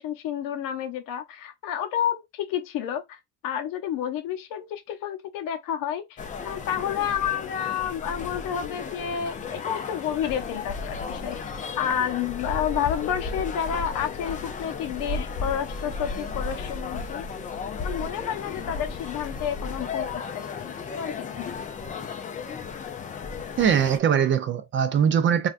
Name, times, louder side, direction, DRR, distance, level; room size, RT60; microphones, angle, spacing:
voice 1, 0.0-11.4 11.8-17.3 17.8-21.5, left 9 dB, 75° left, 0.7 m, -30 dB
sound 1, 6.2-24.0, left 5 dB, 25° left, 0.4 m, -34 dB
voice 2, 23.6-25.5, right 8 dB, 35° right, 0.4 m, -21 dB
3.4 x 2.4 x 2.4 m
cardioid pair, 130°, 34 cm